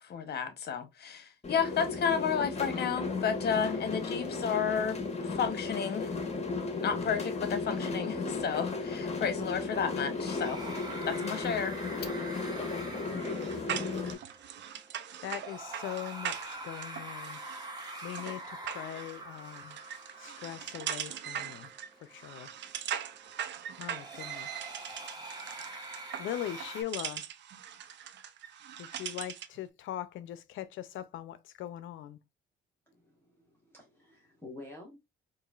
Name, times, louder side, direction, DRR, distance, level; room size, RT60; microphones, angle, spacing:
voice 1, 0.0-6.1 6.8-10.6 11.1-11.8, left 7 dB, 55° left, 0.9 m, -32 dB
sound 1, 1.4-14.1, left 3 dB, 35° left, 1.1 m, -35 dB
sound 2, 10.0-26.8, right 2 dB, 20° right, 1.2 m, -45 dB
sound 3, 13.2-29.6, right 9 dB, 65° right, 0.5 m, -41 dB
voice 2, 15.2-17.4 18.0-19.8 20.2-21.7 22.0-22.5 23.8-24.7 26.2-27.3 28.8-32.2, left 12 dB, 80° left, 0.5 m, -41 dB
voice 3, 32.9-35.0, left 2 dB, 10° left, 1.3 m, -49 dB
4.7 x 2.6 x 2.4 m
cardioid pair, 90°, 20 cm